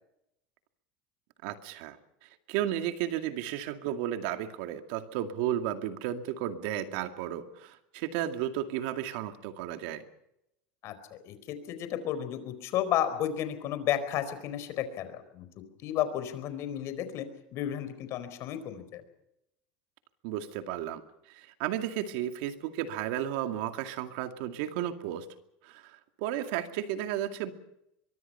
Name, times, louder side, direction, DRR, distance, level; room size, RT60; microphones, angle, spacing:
voice 1, 1.4-10.0 20.2-21.0 21.3-25.3 25.6-27.5, right 11 dB, 75° right, 7 dB, 2.2 m, -33 dB
voice 2, 10.8-15.5 15.8-19.0, left 10 dB, 55° left, 11 dB, 4.4 m, -33 dB
24.0 x 23.0 x 5.7 m, 0.82 s
supercardioid pair, 125°, 6 cm